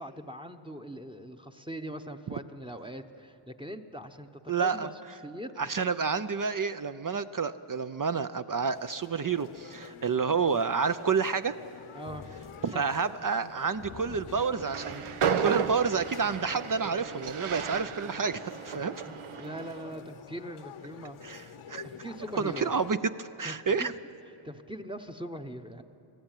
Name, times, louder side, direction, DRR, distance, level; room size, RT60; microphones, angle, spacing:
voice 1, 0.0-4.9 5.2-5.7 11.9-12.2 12.7-12.8 19.0-21.2 21.8-22.7 23.4-24.0 24.4-25.8, right 1 dB, 10° right, 6 dB, 0.9 m, -41 dB
voice 2, 4.5-4.9 5.6-11.6 12.6-15.1 15.4-19.0 21.2-21.9 22.4-23.9, right 5 dB, 45° right, 11 dB, 0.5 m, -29 dB
sound 1, 8.6-23.0, left 7 dB, 85° left, 1.1 m, -48 dB
sound 2, 12.0-13.0 13.3-13.4 13.7-17.1, left 4 dB, 30° left, 0.9 m, -50 dB
Train, 14.6-19.9, right 7 dB, 85° right, 0.9 m, -33 dB
25.0 x 16.0 x 9.0 m, 2.9 s
wide cardioid pair, 110°, 49 cm